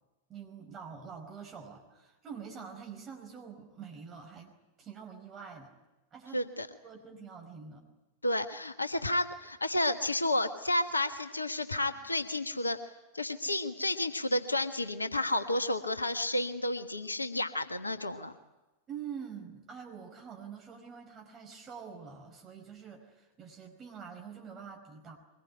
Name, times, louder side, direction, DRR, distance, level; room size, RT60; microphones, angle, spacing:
voice 1, 0.3-5.7 6.1-6.5 6.8-7.8 18.9-25.2, right 6 dB, 25° right, 1 dB, 5.1 m, -46 dB
voice 2, 6.3-6.7 8.2-18.3, left 1 dB, 80° left, 10 dB, 1.3 m, -31 dB
23.5 x 20.5 x 10.0 m, 1.1 s
figure-of-eight pair, 90°, 0 cm